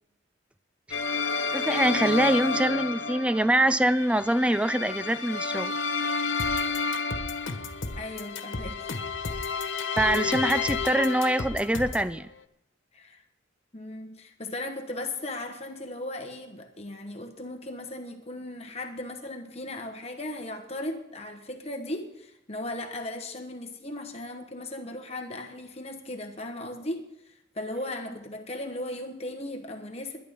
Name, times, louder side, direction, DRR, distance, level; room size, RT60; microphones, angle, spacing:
sound 1, 0.9-11.9, left 4 dB, 70° left, 0.8 m, -31 dB
voice 1, 1.5-5.7 10.0-12.3, right 1 dB, 5° right, 14 dB, 0.4 m, -24 dB
sound 2, 6.4-12.1, left 2 dB, 85° left, 1.4 m, -35 dB
voice 2, 8.0-8.9 12.9-13.2 13.7-27.1 27.5-30.2, left 1 dB, 35° left, 4 dB, 1.2 m, -37 dB
20.5 x 11.0 x 3.7 m, 0.83 s
head